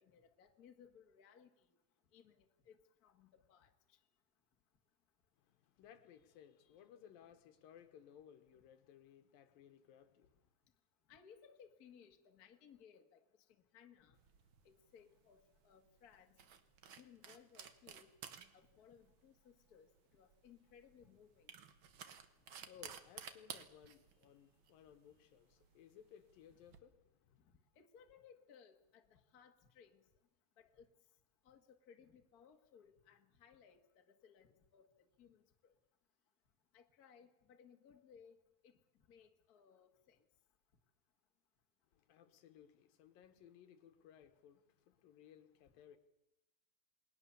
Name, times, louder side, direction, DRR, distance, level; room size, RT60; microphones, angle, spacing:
voice 1, 0.0-1.5 2.1-3.7 11.1-13.2 13.7-14.2 14.6-16.4 16.9-18.1 18.5-19.9 20.1-21.5 27.7-30.0 30.6-30.9 31.4-35.7 36.7-38.4 38.6-38.7 39.1-40.2, left 7 dB, 40° left, 1.5 m, -63 dB
voice 2, 5.4-10.5 22.3-27.5 41.9-46.0, left 9 dB, 80° left, 3.0 m, -61 dB
sound 1, 14.2-26.8, right 7 dB, 60° right, 1.3 m, -56 dB
28.5 x 20.0 x 7.0 m
omnidirectional pair, 4.1 m